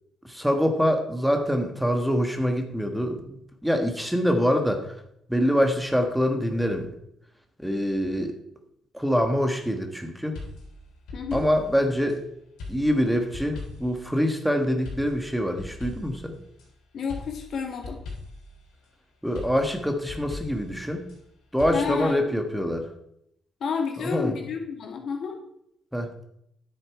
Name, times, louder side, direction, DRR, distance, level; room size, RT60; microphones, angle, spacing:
voice 1, 0.2-4.8 5.3-6.9 7.6-8.3 8.9-10.4 11.3-12.2 12.7-16.3 19.2-21.1 21.5-22.9 24.0-24.3 25.9-26.1, equal, ahead, 5 dB, 1.4 m, -25 dB
sound 1, 10.4-12.2 12.6-14.0 14.9-16.7 17.1-18.5 19.4-21.2 21.6-21.9, left 2 dB, 90° left, 3.5 m, -40 dB
voice 2, 11.1-11.4 16.9-18.0 21.7-22.4 23.6-25.4, left 6 dB, 65° left, 3 dB, 2.2 m, -30 dB
10.0 x 7.8 x 4.6 m, 0.74 s
cardioid pair, 90°, 0 cm